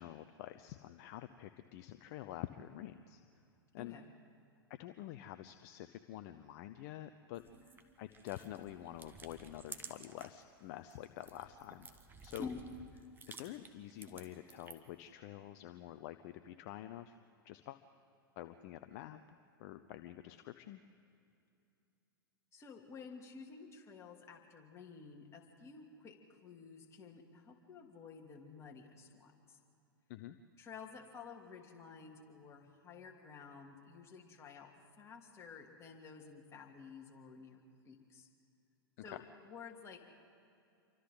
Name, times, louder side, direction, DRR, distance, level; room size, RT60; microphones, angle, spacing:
voice 1, 0.0-3.2 3.7-4.0 4.7-11.9 12.2-12.5 13.3-17.2 17.4-17.8 18.4-19.2 19.6-20.8 30.1-30.4 39.0-39.2, left 13 dB, 45° left, 9 dB, 0.7 m, -48 dB
voice 2, 3.8-4.1 12.4-12.6 22.5-26.2 26.4-29.6 30.6-34.7 35.0-38.3 39.0-40.0, left 5 dB, 25° left, 0 dB, 2.9 m, -51 dB
sound 1, 7.3-10.4 10.8-15.0, right 4 dB, 15° right, 1.5 m, -54 dB
27.5 x 24.5 x 3.9 m, 2.6 s
figure-of-eight pair, 100°, 12 cm